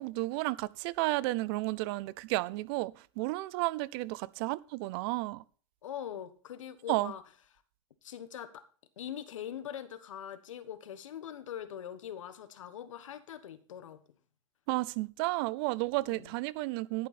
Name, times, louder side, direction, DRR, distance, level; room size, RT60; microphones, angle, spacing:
voice 1, 0.0-5.4 6.9-7.1 14.7-17.1, right 21 dB, 50° right, 0.6 m, -32 dB
voice 2, 5.8-7.2 8.0-8.6 9.0-14.0 16.0-16.3, left 10 dB, 80° left, 1.4 m, -42 dB
11.5 x 8.7 x 4.2 m
hypercardioid pair, 115°, 16 cm